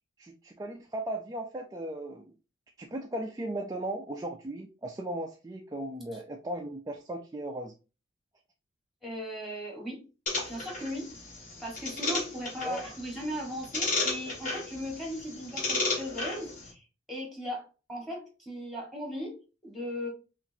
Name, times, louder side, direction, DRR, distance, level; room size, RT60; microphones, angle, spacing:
voice 1, 0.2-2.3 2.8-7.7 12.6-12.8, right 1 dB, 15° right, 2 dB, 0.3 m, -37 dB
voice 2, 9.0-10.0 10.5-11.1 11.6-20.1, equal, ahead, -1 dB, 1.4 m, -38 dB
sound 1, 10.3-16.7, left 3 dB, 40° left, 1.8 m, -34 dB
5.7 x 2.5 x 2.7 m, 0.32 s
head